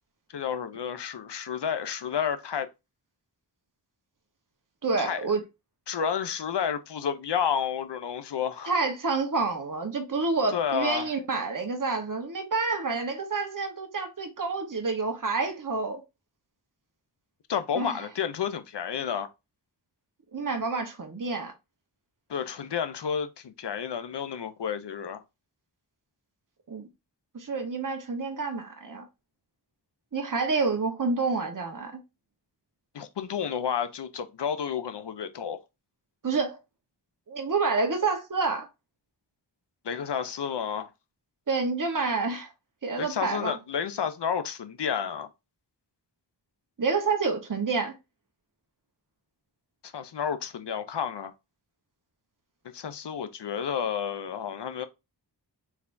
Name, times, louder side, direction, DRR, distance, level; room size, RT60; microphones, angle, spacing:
voice 1, 0.3-2.7 5.0-5.2 5.9-8.8 10.5-11.1 17.5-19.3 22.3-25.2 32.9-35.6 39.8-40.9 43.0-45.3 49.8-51.3 52.7-54.9, left 7 dB, 70° left, 0.7 m, -31 dB
voice 2, 4.8-5.4 8.6-16.0 17.7-18.0 20.3-21.5 26.7-26.9 27.3-29.0 30.1-32.0 36.2-36.6 37.3-38.7 41.5-42.5 42.8-43.6 46.8-47.9, right 4 dB, 45° right, 1.1 m, -28 dB
4.7 x 3.4 x 2.6 m
wide cardioid pair, 70°, 43 cm